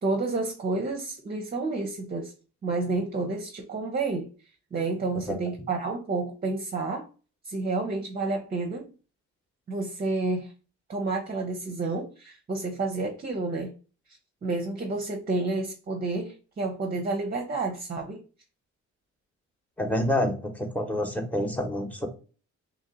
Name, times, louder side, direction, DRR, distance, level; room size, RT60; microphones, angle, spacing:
voice 1, 0.0-2.3 2.6-4.3 4.7-7.1 7.4-8.9 9.7-10.5 10.9-13.7 14.4-18.2, right 3 dB, 30° right, 0.7 m, -30 dB
voice 2, 19.8-22.1, left 1 dB, 5° left, 1.0 m, -28 dB
3.0 x 2.7 x 3.9 m
cardioid pair, 90°, 30 cm